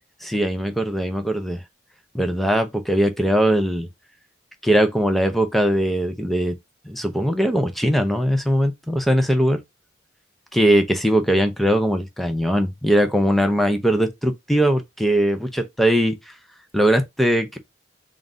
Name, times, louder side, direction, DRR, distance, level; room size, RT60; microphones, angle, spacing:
voice 1, 0.2-1.6 2.1-3.9 4.6-6.5 6.9-9.6 10.5-16.2 16.7-17.6, equal, ahead, 0.5 m, -20 dB
3.8 x 2.5 x 3.8 m
head